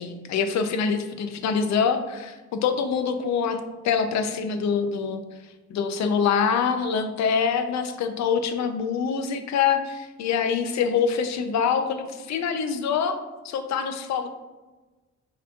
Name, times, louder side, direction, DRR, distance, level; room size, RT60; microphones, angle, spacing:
voice 1, 0.0-3.6 3.8-5.2 5.7-14.3, left 6 dB, 65° left, 8 dB, 0.5 m, -25 dB
4.7 x 2.8 x 2.3 m, 1.2 s
cardioid pair, 90°, 30 cm